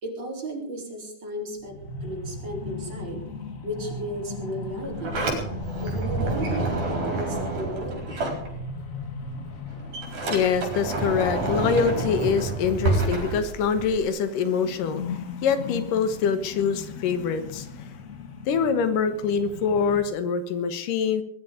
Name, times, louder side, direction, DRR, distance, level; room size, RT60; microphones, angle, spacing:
voice 1, 0.0-3.2 3.6-5.1 5.8-8.3, right 1 dB, 35° right, 0 dB, 4.8 m, -34 dB
sound 1, 1.6-14.0 14.3-20.0, left 4 dB, 50° left, 1.0 m, -38 dB
Sliding door, 4.7-9.0 9.3-14.0, right 3 dB, 70° right, 5.7 m, -28 dB
voice 2, 10.1-17.9 18.5-21.2, left 6 dB, 85° left, 10 dB, 3.0 m, -25 dB
21.0 x 11.0 x 5.1 m, 0.68 s
omnidirectional pair, 3.7 m